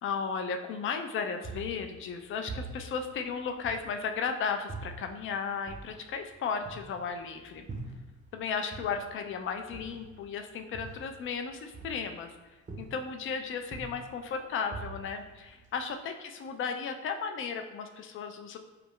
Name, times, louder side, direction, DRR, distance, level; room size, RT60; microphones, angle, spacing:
voice 1, 0.0-7.7 8.3-12.3 12.8-18.6, left 6 dB, 45° left, 6 dB, 0.4 m, -35 dB
sound 1, 1.4-4.3 4.7-8.4 8.7-12.4 12.7-13.3 13.6-15.9, right 3 dB, 25° right, 0.6 m, -44 dB
2.4 x 2.2 x 3.5 m, 1.2 s
supercardioid pair, 85°, 29 cm